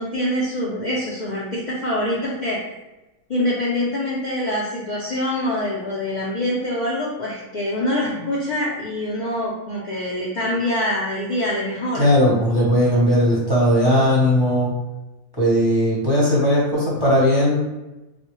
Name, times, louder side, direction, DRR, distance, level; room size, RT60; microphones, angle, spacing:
voice 1, 0.0-2.6 3.3-12.1, left 1 dB, 75° left, -6 dB, 0.4 m, -25 dB
voice 2, 11.9-14.7 15.4-17.6, equal, 25° right, -6 dB, 0.6 m, -18 dB
4.0 x 2.1 x 3.0 m, 1.0 s
omnidirectional pair, 1.5 m